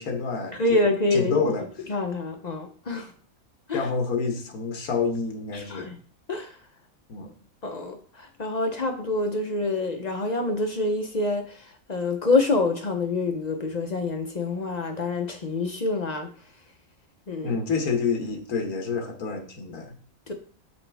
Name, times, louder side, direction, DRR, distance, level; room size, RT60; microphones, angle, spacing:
voice 1, 0.0-0.8 1.1-1.7 3.7-5.9 7.1-7.3 17.4-19.9, left 5 dB, 85° left, 4 dB, 1.5 m, -28 dB
voice 2, 0.5-1.5 1.9-3.1 3.7-3.9 5.5-5.9 6.3-6.5 7.6-11.6 11.9-16.3 17.3-17.6 20.3-20.4, left 2 dB, 45° left, 4 dB, 0.6 m, -26 dB
6.5 x 5.4 x 3.4 m, 0.44 s
omnidirectional pair, 1.5 m